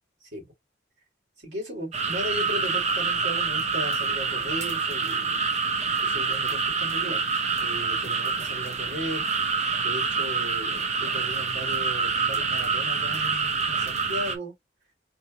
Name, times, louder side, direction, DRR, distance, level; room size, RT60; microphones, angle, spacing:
voice 1, 1.4-5.4 6.0-7.2 7.6-14.5, equal, 65° right, 2.6 m, -37 dB
sound 1, 1.9-14.4, right 5 dB, 35° right, 0.7 m, -27 dB
4.3 x 2.6 x 2.5 m
head